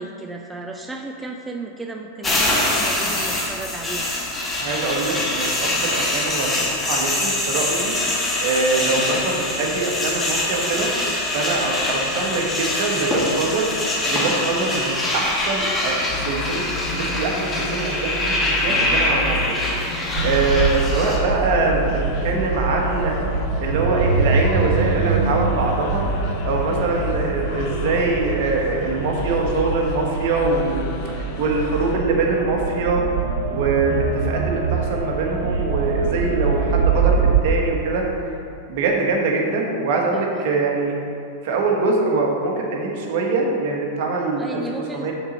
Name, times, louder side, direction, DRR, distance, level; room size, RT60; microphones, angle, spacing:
voice 1, 0.0-4.1 26.7-27.1 40.0-40.7 44.4-45.1, right 2 dB, 10° right, 2 dB, 0.4 m, -35 dB
sound 1, 2.2-21.2, left 1 dB, 15° left, 1.2 m, -24 dB
voice 2, 4.6-7.9 8.4-10.9 11.3-13.7 14.1-16.0 16.3-16.6 16.9-19.6 20.2-23.1 23.6-26.0 26.4-33.0 33.5-38.3 38.7-41.0 41.4-44.6 44.9-45.1, right 3 dB, 60° right, -1 dB, 1.2 m, -23 dB
sound 2, 16.1-32.0, left 1 dB, 50° left, 0.7 m, -31 dB
sound 3, 20.2-37.4, right 5 dB, 80° right, 0.7 m, -24 dB
6.0 x 4.1 x 5.2 m, 2.6 s
hypercardioid pair, 125°, 0 cm